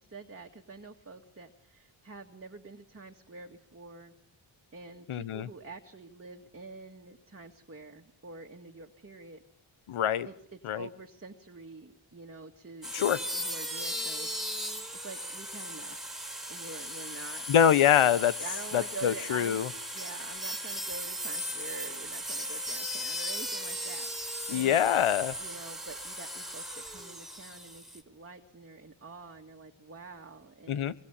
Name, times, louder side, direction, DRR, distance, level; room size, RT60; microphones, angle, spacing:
voice 1, 0.0-4.1 4.7-9.4 10.2-14.3 14.9-16.0 16.5-17.4 18.0-18.1 18.4-19.6 19.9-24.9 25.4-30.9, right 3 dB, 30° right, 3 dB, 2.1 m, -46 dB
voice 2, 5.1-5.5 9.9-10.3 10.6-10.9 12.9-13.2 17.5-18.3 18.7-19.7 24.5-25.3 30.7-30.9, left 9 dB, 85° left, 16 dB, 1.2 m, -25 dB
sound 1, 12.8-28.0, equal, ahead, 4.0 m, -37 dB
26.0 x 23.5 x 8.4 m, 0.63 s
cardioid pair, 80°, 48 cm